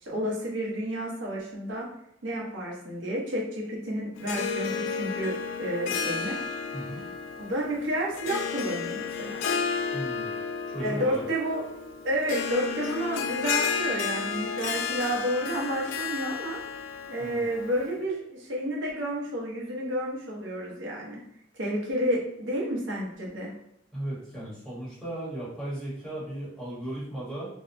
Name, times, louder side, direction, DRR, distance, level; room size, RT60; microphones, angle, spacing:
voice 1, 0.0-1.9 2.2-5.3 5.6-6.4 7.4-9.4 10.8-11.6 12.0-16.6 17.1-21.2 21.5-23.5, equal, 90° right, -3 dB, 0.9 m, -30 dB
Harp, 4.2-17.9, left 6 dB, 90° left, 0.3 m, -32 dB
voice 2, 9.9-10.3 10.7-11.2 17.2-17.4 23.9-27.5, right 1 dB, 5° left, -9 dB, 1.0 m, -36 dB
2.7 x 2.2 x 2.5 m, 0.77 s
head